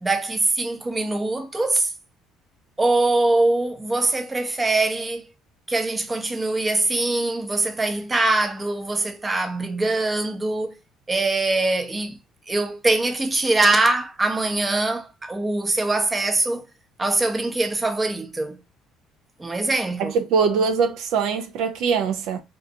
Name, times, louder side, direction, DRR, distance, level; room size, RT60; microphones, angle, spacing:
voice 1, 0.0-1.9 2.8-5.2 5.7-10.7 11.1-12.2 12.5-16.6 17.0-18.6 19.4-20.1, right 2 dB, 20° right, 0.6 m, -23 dB
voice 2, 20.0-22.4, right 5 dB, 75° right, 0.3 m, -22 dB
2.5 x 2.2 x 2.6 m
supercardioid pair, 85°, 0 cm